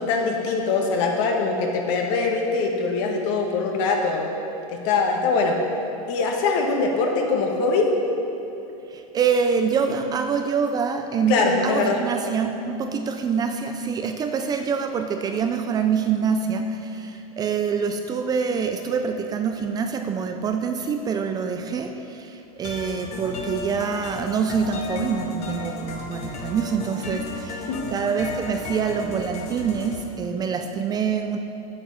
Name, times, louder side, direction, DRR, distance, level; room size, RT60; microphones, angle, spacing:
voice 1, 0.0-4.3 4.7-5.6 6.1-7.9 11.3-12.0 27.7-27.9, left 4 dB, 55° left, 1 dB, 1.7 m, -22 dB
voice 2, 8.9-31.4, right 6 dB, 20° right, 6 dB, 0.4 m, -25 dB
sound 1, 22.6-30.0, left 3 dB, 35° left, 1.3 m, -35 dB
9.3 x 7.7 x 5.8 m, 2.9 s
supercardioid pair, 140°, 18 cm